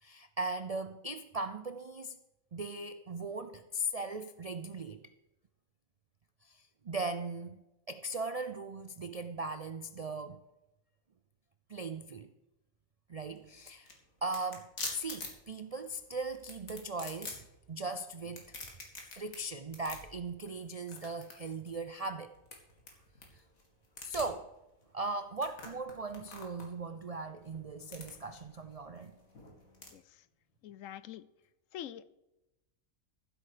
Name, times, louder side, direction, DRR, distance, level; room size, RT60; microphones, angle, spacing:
voice 1, 0.0-2.2 2.5-5.0 6.4-10.4 11.7-12.3 13.1-13.9 14.2-18.5 19.1-22.3 24.0-24.5 24.9-29.1, right 2 dB, 55° right, 9 dB, 0.4 m, -39 dB
sound 1, 13.2-29.9, left 3 dB, 90° left, 2.8 m, -48 dB
voice 2, 30.6-31.3 31.7-32.2, left 11 dB, 75° left, 15 dB, 1.0 m, -45 dB
14.5 x 8.0 x 5.0 m, 0.97 s
omnidirectional pair, 1.4 m